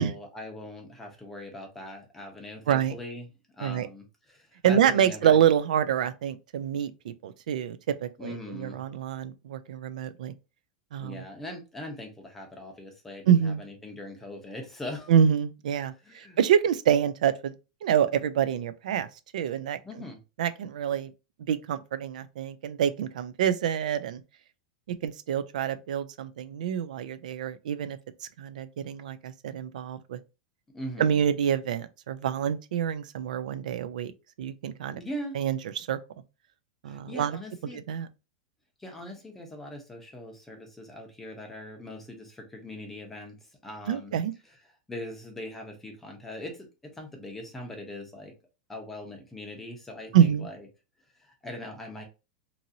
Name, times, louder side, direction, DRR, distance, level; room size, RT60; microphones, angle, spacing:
voice 1, 0.0-3.3 3.6-5.4 8.2-8.8 11.0-15.1 16.0-16.4 19.8-20.2 30.7-31.2 35.0-35.4 36.9-37.8 38.8-43.4 43.6-44.2 44.9-48.3 48.7-50.6 51.2-52.0, left 1 dB, 5° left, 0.6 m, -41 dB
voice 2, 4.6-10.3 10.9-11.2 13.3-13.6 15.1-17.5 17.8-19.1 19.3-19.8 20.4-21.1 21.4-24.2 24.9-30.2 31.0-34.1 34.4-35.0 35.3-36.0 36.8-37.4 37.7-38.1 43.9-44.3 50.1-50.5, right 9 dB, 85° right, 0.3 m, -26 dB
2.9 x 2.6 x 2.6 m
supercardioid pair, 165°, 4 cm